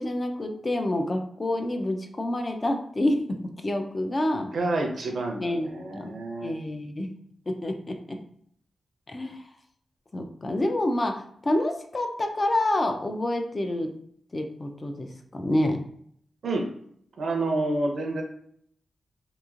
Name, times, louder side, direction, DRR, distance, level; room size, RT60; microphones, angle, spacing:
voice 1, 0.0-3.2 3.6-4.5 5.4-7.1 7.5-8.2 9.1-9.4 10.1-13.9 14.3-15.8, left 1 dB, 30° left, 5 dB, 0.3 m, -28 dB
voice 2, 4.4-6.5 16.4-16.7 17.2-18.2, right 2 dB, 70° right, 2 dB, 0.6 m, -28 dB
2.9 x 2.6 x 2.4 m, 0.66 s
wide cardioid pair, 120°, 0 cm